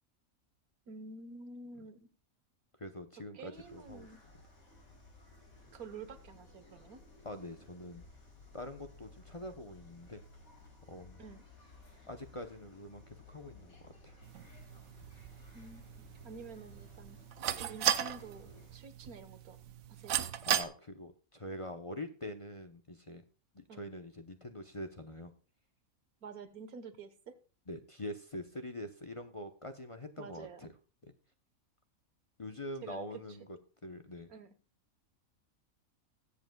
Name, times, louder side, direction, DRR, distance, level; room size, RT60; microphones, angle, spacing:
voice 1, 0.9-2.1 3.3-4.2 5.7-7.0 11.2-11.5 15.5-17.2 17.7-19.6 19.9-20.2 23.7-23.8 26.2-27.3 30.2-30.7 32.8-33.4 34.3-34.5, right 4 dB, 90° right, 10 dB, 1.7 m, -49 dB
voice 2, 2.8-4.1 7.2-8.0 8.5-10.2 10.9-11.2 12.1-14.2 20.5-23.2 23.5-25.3 27.7-30.7 31.0-31.1 32.4-34.3, left 1 dB, 30° left, 7 dB, 0.7 m, -44 dB
sound 1, 3.5-18.8, left 3 dB, 75° left, 3.8 m, -57 dB
sound 2, 14.2-20.6, right 10 dB, 70° right, 1.1 m, -37 dB
20.5 x 8.0 x 2.3 m, 0.37 s
omnidirectional pair, 1.5 m